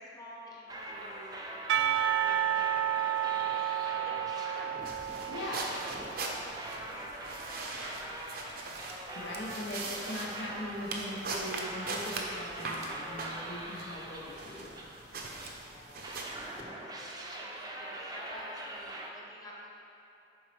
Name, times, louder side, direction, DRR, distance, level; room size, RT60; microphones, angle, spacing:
voice 1, 0.0-1.6 2.1-3.8 4.0-5.3 5.7-8.3 15.5-19.7, equal, 20° left, -4 dB, 1.0 m, -50 dB
sound 1, 0.7-15.6 16.0-19.1, right 1 dB, 20° right, 0.6 m, -43 dB
Percussion / Church bell, 1.7-6.5, right 10 dB, 75° right, 0.3 m, -31 dB
sound 2, 4.8-16.6, right 3 dB, 55° right, 0.7 m, -41 dB
voice 2, 5.3-5.6 9.1-14.8, left 1 dB, 70° left, -4 dB, 0.9 m, -40 dB
11.0 x 4.1 x 3.3 m, 2.9 s
head